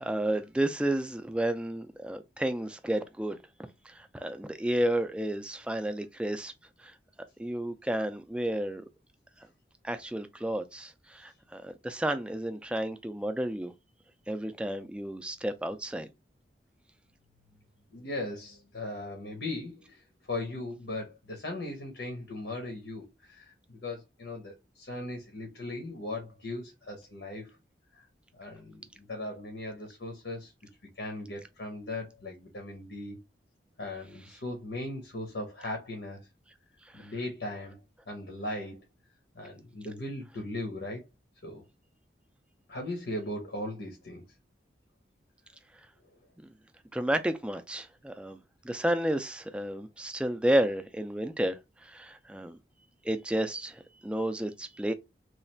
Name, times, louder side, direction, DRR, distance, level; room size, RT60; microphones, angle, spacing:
voice 1, 0.0-3.4 3.9-6.5 7.4-8.8 9.8-13.7 14.3-16.1 46.9-48.4 48.6-52.6 53.0-54.9, right 1 dB, 5° right, 0.3 m, -31 dB
voice 2, 17.9-20.0 20.3-27.6 27.9-28.1 28.3-30.5 31.0-33.2 33.8-36.3 36.9-37.8 38.1-38.8 39.3-41.1 41.4-41.6 42.7-44.2, left 2 dB, 80° left, 0.8 m, -38 dB
3.1 x 2.4 x 4.3 m
head